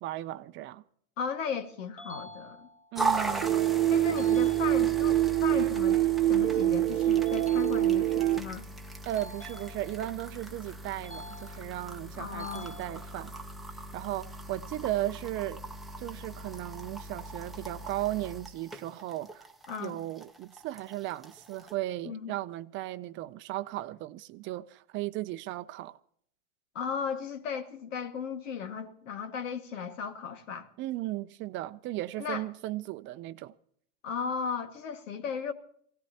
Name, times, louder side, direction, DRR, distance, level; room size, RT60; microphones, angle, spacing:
voice 1, 0.0-0.8 2.9-3.8 9.0-13.3 13.9-15.6 16.0-19.5 19.8-26.0 30.8-33.5, right 15 dB, 30° right, 0.5 m, -36 dB
voice 2, 1.2-2.7 3.9-6.0 6.3-8.7 12.2-12.7 19.7-20.0 22.0-22.3 26.8-30.7 32.2-32.4 34.0-35.5, left 6 dB, 80° left, 1.9 m, -36 dB
sound 1, 2.0-3.0 4.2-5.2 7.3-8.3 9.2-10.2 11.0-11.9 12.4-13.4, left 1 dB, 20° left, 1.7 m, -48 dB
sound 2, 2.9-21.7, right 2 dB, ahead, 0.8 m, -39 dB
sound 3, 3.4-8.4, right 14 dB, 85° right, 1.0 m, -25 dB
23.5 x 17.5 x 2.9 m
supercardioid pair, 130°, 37 cm